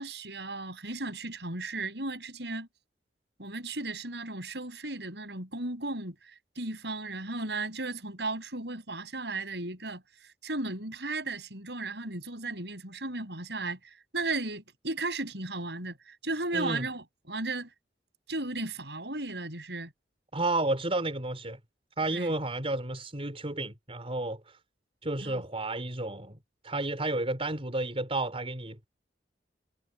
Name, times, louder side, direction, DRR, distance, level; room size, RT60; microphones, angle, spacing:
voice 1, 0.0-2.7 3.4-6.2 6.6-10.0 10.4-13.8 14.1-17.7 18.3-19.9 22.1-22.3 25.2-25.4, right 2 dB, 70° right, 7.8 m, -35 dB
voice 2, 16.5-16.9 20.3-21.6 22.0-24.6 25.0-28.9, right 2 dB, 35° right, 4.4 m, -32 dB
head